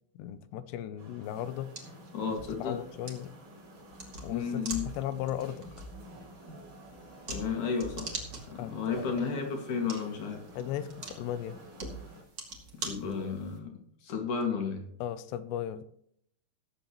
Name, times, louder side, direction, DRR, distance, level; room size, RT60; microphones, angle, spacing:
voice 1, 0.2-1.7 2.6-3.3 4.2-5.7 8.6-9.2 10.6-11.6 15.0-15.8, left 11 dB, 80° left, 13 dB, 2.7 m, -36 dB
sound 1, 1.0-12.2, equal, 60° right, 6.7 m, -51 dB
sound 2, 1.2-13.6, right 2 dB, 35° right, 2.1 m, -44 dB
voice 2, 2.1-2.8 4.3-4.9 7.3-8.1 8.5-10.4 12.8-13.7 14.0-14.8, left 6 dB, 50° left, 3 dB, 2.9 m, -32 dB
20.0 x 7.9 x 3.1 m, 0.68 s
omnidirectional pair, 5.3 m